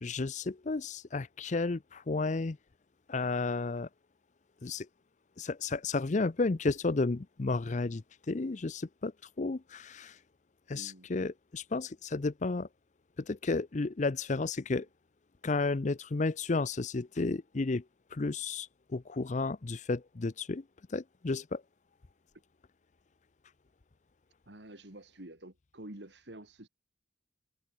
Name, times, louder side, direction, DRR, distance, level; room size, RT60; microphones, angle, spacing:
voice 1, 0.0-2.6 3.1-3.9 4.6-4.9 5.4-9.1 9.4-10.2 10.7-12.7 13.2-14.9 15.4-17.8 18.1-20.6 20.9-21.6, left 3 dB, 45° left, 0.6 m, -32 dB
voice 2, 10.7-11.1 24.5-26.7, right 1 dB, 80° right, 3.6 m, -48 dB
head